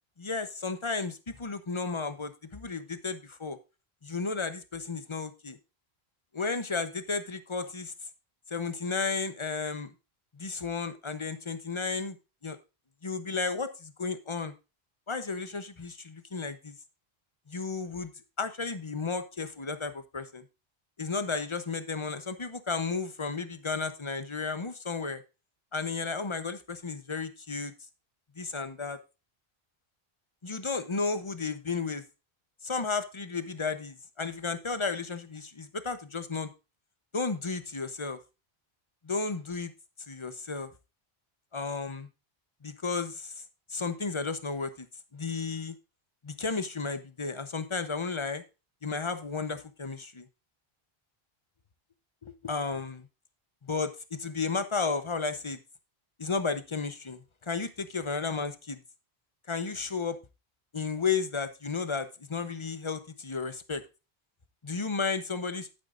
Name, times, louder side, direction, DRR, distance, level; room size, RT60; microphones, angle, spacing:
voice 1, 0.2-3.6 4.0-5.6 6.3-7.9 8.5-9.9 10.4-12.2 12.4-12.6 13.0-14.5 15.1-16.7 17.5-18.1 18.4-20.4 21.0-25.2 25.7-27.7 28.4-29.0 30.4-32.0 32.6-36.5 37.1-38.2 39.0-39.7 40.1-40.7 41.5-42.1 42.6-43.3 43.7-44.9 45.1-45.7 46.2-48.4 48.8-50.3 52.2-53.1 53.6-55.6 56.2-58.8 59.5-60.2 60.7-63.8 64.6-65.7, left 4 dB, 30° left, 11 dB, 0.9 m, -33 dB
11.0 x 9.1 x 2.5 m, 0.28 s
omnidirectional pair, 1.0 m